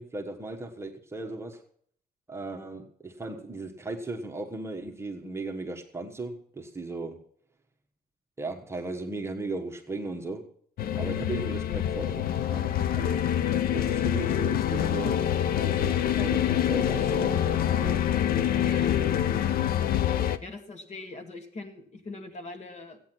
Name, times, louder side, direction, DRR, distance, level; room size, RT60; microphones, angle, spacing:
voice 1, 0.0-1.6 2.3-7.2 8.4-10.5 10.9-13.3 13.7-15.3 15.6-18.0 18.3-18.5 19.0-19.1, right 2 dB, 15° right, 2 dB, 1.3 m, -37 dB
sound 1, 10.8-20.4, left 10 dB, 60° left, 0.7 m, -26 dB
voice 2, 18.7-19.0 20.4-23.0, left 2 dB, 40° left, 5 dB, 2.2 m, -42 dB
14.0 x 9.1 x 6.1 m, 0.62 s
cardioid pair, 110°, 17 cm